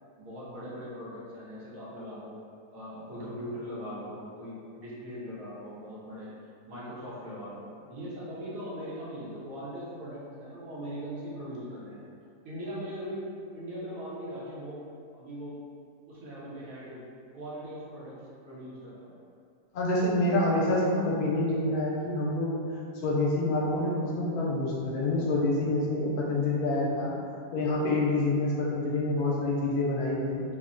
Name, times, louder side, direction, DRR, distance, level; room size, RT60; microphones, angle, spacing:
voice 1, 0.2-2.4 2.7-6.3 6.7-12.0 12.4-14.9 15.1-15.6 16.1-17.0 17.3-19.1, equal, 70° right, -8 dB, 1.1 m, -40 dB
voice 2, 19.7-22.5 23.0-27.1 27.5-30.4, left 2 dB, 85° left, -5 dB, 1.1 m, -27 dB
3.2 x 2.1 x 2.4 m, 2.4 s
omnidirectional pair, 1.6 m